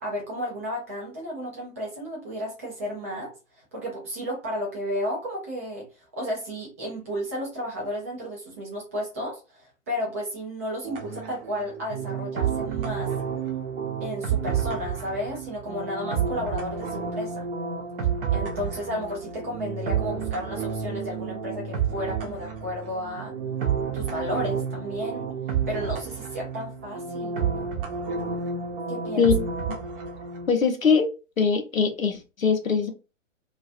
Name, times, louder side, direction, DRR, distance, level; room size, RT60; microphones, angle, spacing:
voice 1, 0.0-5.9 6.1-13.1 14.0-17.5 18.3-23.3 23.9-25.3 25.7-27.3 28.9-29.3, equal, 10° right, -2 dB, 0.4 m, -33 dB
sound 1, 10.8-30.5, right 7 dB, 45° right, 0.7 m, -30 dB
voice 2, 30.5-31.1 31.4-32.9, left 5 dB, 85° left, 5 dB, 0.7 m, -22 dB
2.3 x 2.3 x 2.5 m, 0.30 s
figure-of-eight pair, 115°, 39 cm